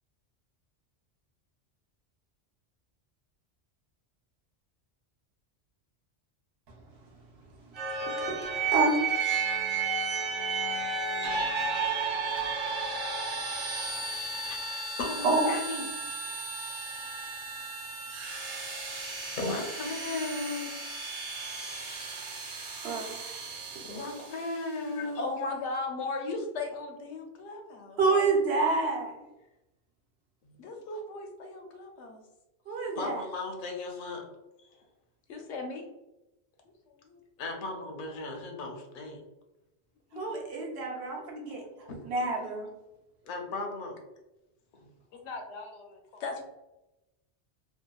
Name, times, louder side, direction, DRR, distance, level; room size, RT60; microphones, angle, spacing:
sound 1, 7.7-24.5, right 4 dB, 50° right, 0.5 m, -33 dB
voice 1, 15.0-15.8 19.4-20.7 23.8-25.2 30.4-30.6 33.0-34.2 37.4-39.2 43.2-44.0, left 2 dB, 55° left, 2 dB, 0.7 m, -36 dB
voice 2, 22.8-23.4 28.0-29.1 32.7-33.2 40.2-42.7, right 3 dB, 70° right, -1 dB, 0.9 m, -28 dB
voice 3, 24.8-28.0 30.6-32.2 35.3-35.8 36.9-37.2 40.1-40.4 40.9-41.0 45.1-46.4, left 3 dB, 85° left, 3 dB, 0.9 m, -37 dB
2.7 x 2.3 x 2.2 m, 0.95 s
omnidirectional pair, 1.1 m